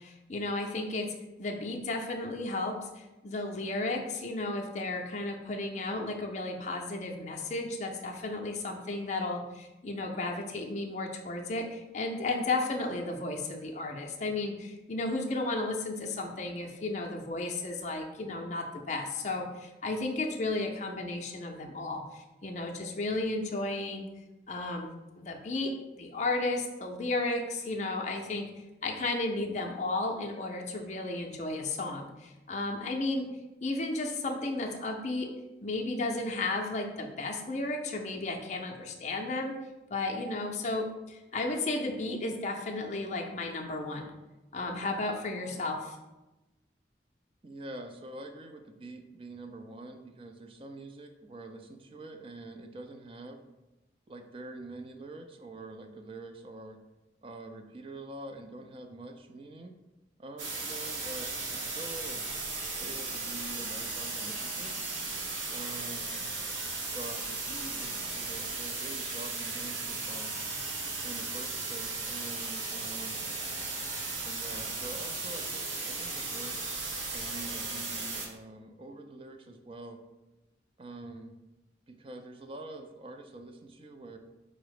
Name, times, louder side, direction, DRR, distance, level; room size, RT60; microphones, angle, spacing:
voice 1, 0.0-24.1 24.5-28.5 28.8-33.3 33.6-35.3 35.6-39.5 39.9-44.1 44.5-46.0, left 2 dB, 40° left, 1 dB, 0.5 m, -33 dB
voice 2, 47.4-53.4 54.1-56.8 57.2-59.8 60.2-62.3 62.8-64.8 65.5-66.1 66.9-70.4 71.0-73.2 74.2-76.8 77.1-80.0 80.8-81.4 81.9-84.2, right 2 dB, 30° right, 5 dB, 0.4 m, -45 dB
sound 1, 60.4-78.3, right 3 dB, 90° right, 0.9 m, -36 dB
4.8 x 2.0 x 4.7 m, 1.0 s
head